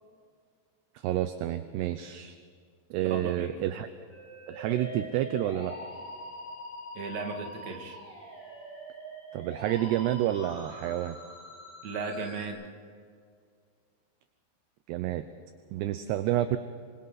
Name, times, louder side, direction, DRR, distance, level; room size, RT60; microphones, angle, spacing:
voice 1, 1.0-2.4 2.9-3.9 4.5-5.8 9.3-11.2 14.9-15.3 15.7-16.6, right 13 dB, 80° right, 10 dB, 2.6 m, -29 dB
voice 2, 3.0-3.6 6.9-8.0 11.8-12.6, right 4 dB, 45° right, 2 dB, 3.0 m, -36 dB
Musical instrument, 4.1-12.5, equal, 5° left, 5.2 m, -43 dB
26.5 x 25.0 x 4.2 m, 2.1 s
omnidirectional pair, 5.4 m